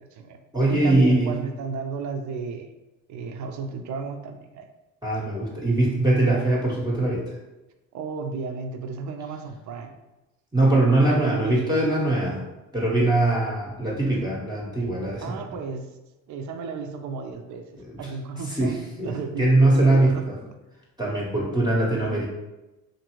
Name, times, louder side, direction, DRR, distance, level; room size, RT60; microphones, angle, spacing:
voice 1, 0.0-0.4 0.7-2.7 3.1-4.7 7.9-10.0 11.0-11.8 15.2-15.9 16.3-20.3 22.1-22.2, right 5 dB, 50° right, 6 dB, 0.5 m, -33 dB
voice 2, 0.5-1.3 5.0-7.3 10.5-12.4 12.7-15.3 18.5-20.3 21.0-22.3, right 2 dB, 10° right, -5 dB, 0.7 m, -22 dB
2.6 x 2.5 x 2.9 m, 1.0 s
hypercardioid pair, 60°, 37 cm